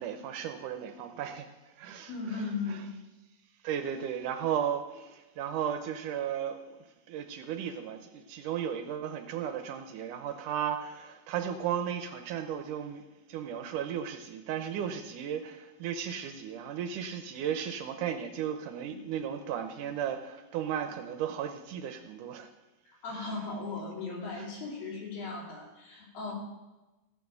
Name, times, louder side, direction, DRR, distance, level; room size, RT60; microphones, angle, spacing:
voice 1, 0.0-1.5 1.8-2.1 2.7-2.8 3.6-13.0 13.3-22.5 23.2-23.3, right 9 dB, 75° right, 7 dB, 2.1 m, -35 dB
voice 2, 2.1-2.9 18.9-19.0 22.9-26.3, left 4 dB, 80° left, -3 dB, 4.8 m, -37 dB
14.5 x 5.7 x 7.6 m, 1.1 s
omnidirectional pair, 4.0 m